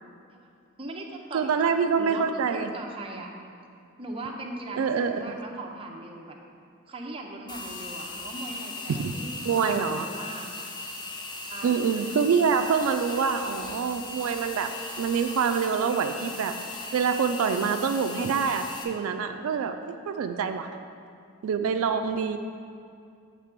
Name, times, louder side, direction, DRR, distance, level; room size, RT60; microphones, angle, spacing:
voice 1, 0.8-3.3 4.0-6.4 6.9-10.5 11.4-11.8, right 2 dB, 25° right, 0 dB, 0.6 m, -39 dB
voice 2, 1.3-2.7 4.8-5.2 8.9-9.1 9.5-10.1 11.6-14.7 15.0-16.5 16.9-19.8 20.1-20.7 21.4-22.4, right 6 dB, 85° right, 7 dB, 0.3 m, -26 dB
sound 1, 7.5-18.8, left 2 dB, 20° left, 0.6 m, -38 dB
7.4 x 3.4 x 5.9 m, 2.4 s
head